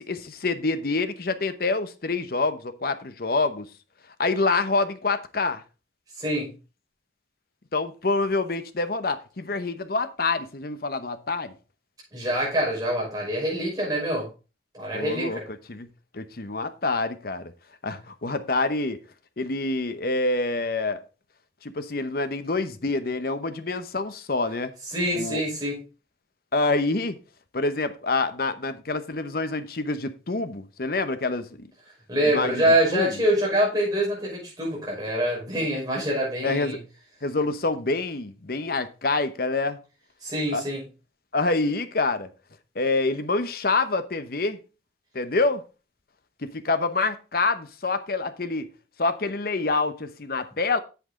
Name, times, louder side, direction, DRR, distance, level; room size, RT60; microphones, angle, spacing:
voice 1, 0.0-3.7 4.2-5.6 7.7-11.5 14.9-15.4 15.7-15.9 16.1-17.5 17.8-19.0 19.4-21.0 21.6-24.7 25.1-25.4 26.5-27.2 27.5-31.7 32.3-32.6 32.9-33.1 36.4-36.8 37.2-39.8 40.5-40.6 41.3-42.3 42.8-44.6 45.1-45.7 46.4-48.7 49.0-50.8, left 3 dB, 55° left, 0.8 m, -26 dB
voice 2, 6.2-6.5 12.1-14.3 14.7-15.4 24.9-25.8 32.1-36.8 40.2-40.8, right 1 dB, 20° right, 5.8 m, -25 dB
8.2 x 7.9 x 3.7 m
head